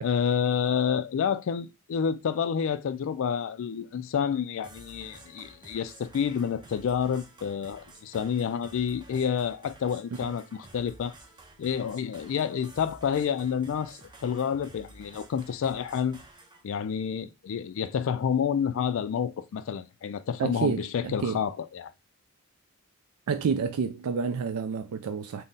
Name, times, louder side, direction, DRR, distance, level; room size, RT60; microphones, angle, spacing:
voice 1, 0.0-11.1 11.6-16.2 16.6-21.9, left 7 dB, 60° left, 0.3 m, -29 dB
sound 1, 4.6-16.6, right 2 dB, 20° right, 0.6 m, -52 dB
voice 2, 20.4-21.4 23.3-25.4, right 6 dB, 75° right, 0.4 m, -29 dB
4.0 x 2.1 x 3.6 m
head